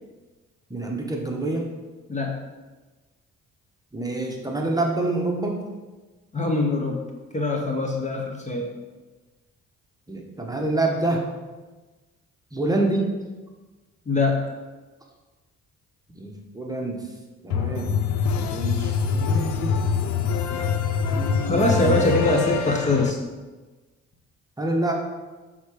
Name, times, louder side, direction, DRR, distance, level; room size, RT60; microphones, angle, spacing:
voice 1, 0.7-1.7 3.9-5.6 10.1-11.2 12.5-13.1 16.1-17.0 17.4-18.0 18.3-19.8 21.1-21.6 21.8-22.4 24.6-24.9, right 2 dB, 10° right, 0 dB, 1.0 m, -27 dB
voice 2, 6.3-7.0 7.3-8.7 14.1-14.5 21.4-23.2, left 2 dB, 25° left, 1 dB, 0.8 m, -23 dB
sound 1, 17.5-23.1, left 6 dB, 65° left, 0.6 m, -24 dB
6.4 x 3.7 x 4.8 m, 1.2 s
cardioid pair, 90°, 30 cm